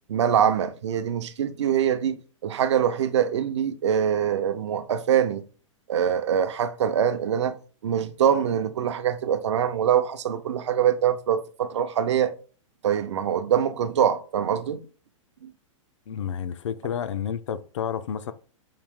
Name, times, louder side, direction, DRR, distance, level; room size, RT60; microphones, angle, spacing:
voice 1, 0.1-5.4 5.9-7.6 7.8-12.3 12.8-14.8 15.4-15.5, right 9 dB, 60° right, 0.6 m, -24 dB
voice 2, 16.1-18.3, left 8 dB, 65° left, 0.5 m, -30 dB
4.8 x 2.7 x 3.6 m
hypercardioid pair, 180°, 17 cm